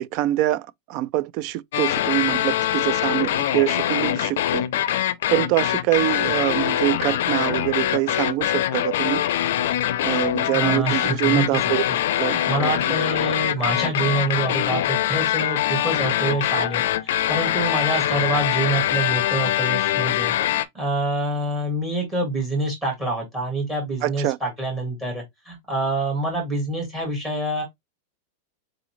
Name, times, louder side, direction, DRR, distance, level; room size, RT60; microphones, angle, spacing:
voice 1, 0.0-4.6 5.3-9.2 10.0-11.8 12.1-12.7 24.0-24.4, right 15 dB, 35° right, 0.3 m, -24 dB
sound 1, 1.7-20.7, left 12 dB, 60° left, 0.5 m, -23 dB
voice 2, 10.5-11.8 12.1-27.6, right 2 dB, 10° right, 1.6 m, -26 dB
3.9 x 3.7 x 3.1 m
supercardioid pair, 175°, 0 cm